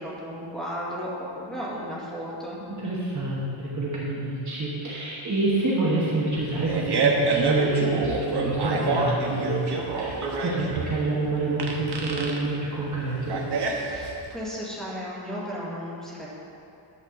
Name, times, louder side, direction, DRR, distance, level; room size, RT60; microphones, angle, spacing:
voice 1, 0.0-2.6 13.8-16.3, equal, ahead, -9 dB, 2.0 m, -34 dB
voice 2, 2.7-13.4, right 2 dB, 35° right, -6 dB, 1.3 m, -27 dB
Fart, 6.4-14.3, right 3 dB, 55° right, 1.1 m, -27 dB
11.0 x 7.2 x 4.0 m, 2.8 s
wide cardioid pair, 170°, 48 cm